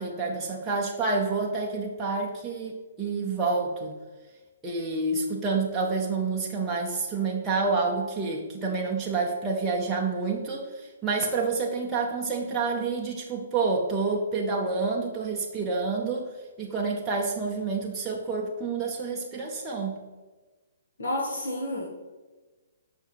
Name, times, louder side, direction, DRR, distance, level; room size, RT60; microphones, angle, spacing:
voice 1, 0.0-3.9 4.6-16.3 16.6-19.9, right 4 dB, 5° right, -4 dB, 0.5 m, -28 dB
voice 2, 21.0-21.9, left 1 dB, 75° left, -4 dB, 1.9 m, -30 dB
7.1 x 5.7 x 4.5 m, 1.3 s
hypercardioid pair, 180°, 0 cm